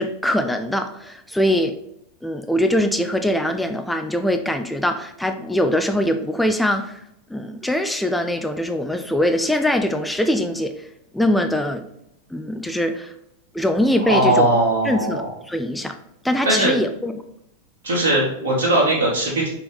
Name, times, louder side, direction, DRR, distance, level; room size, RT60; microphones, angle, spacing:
voice 1, 0.0-1.7 2.2-7.0 7.3-10.9 11.1-11.9 12.3-13.1 13.5-14.6 14.8-16.0 16.2-17.1, left 1 dB, 5° left, 6 dB, 0.3 m, -22 dB
voice 2, 14.1-15.3 16.4-16.8 17.8-19.5, right 1 dB, 60° right, -4 dB, 1.2 m, -19 dB
5.2 x 2.9 x 3.4 m, 0.79 s
figure-of-eight pair, 90°, 0 cm